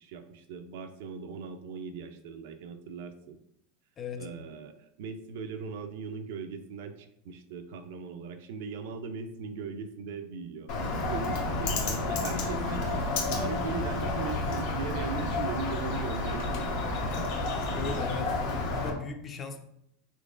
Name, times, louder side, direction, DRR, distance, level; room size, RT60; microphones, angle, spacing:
voice 1, 0.0-3.4 4.2-10.7 11.0-16.8, right 5 dB, 70° right, 7 dB, 0.4 m, -39 dB
voice 2, 4.0-4.3 17.2-19.6, left 4 dB, 30° left, 7 dB, 0.5 m, -39 dB
Bird, 10.7-18.9, left 2 dB, 65° left, 0.8 m, -30 dB
3.7 x 3.0 x 2.4 m, 0.75 s
hypercardioid pair, 95°, 0 cm